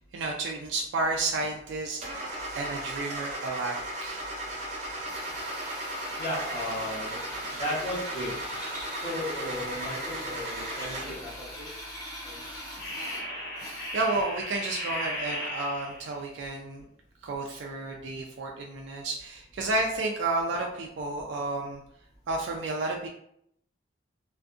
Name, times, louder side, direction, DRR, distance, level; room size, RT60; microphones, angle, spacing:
voice 1, 0.0-2.2 2.5-4.2 13.9-16.9 17.2-21.8 22.3-23.1, right 2 dB, 85° right, 0 dB, 0.3 m, -31 dB
Car / Engine starting, 2.0-11.3, right 1 dB, 40° right, 0.5 m, -36 dB
Drill, 5.1-14.3, equal, 20° left, 0.6 m, -42 dB
voice 2, 6.2-8.4 8.9-11.7 12.2-12.4, left 1 dB, 55° left, -9 dB, 1.0 m, -35 dB
sound 1, 11.6-11.9 12.8-16.2, equal, 80° left, 1.0 m, -36 dB
2.5 x 2.3 x 2.5 m, 0.72 s
head